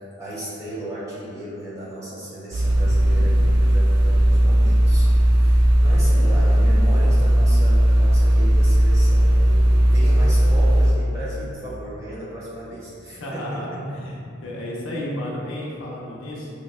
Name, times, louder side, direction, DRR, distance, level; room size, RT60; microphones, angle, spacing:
voice 1, 0.2-13.8, right 1 dB, 15° right, -9 dB, 0.8 m, -35 dB
sound 1, 2.5-10.9, equal, 60° right, 0.4 m, -16 dB
voice 2, 13.2-16.5, left 1 dB, 85° left, -4 dB, 0.7 m, -32 dB
5.2 x 2.1 x 2.4 m, 2.4 s
head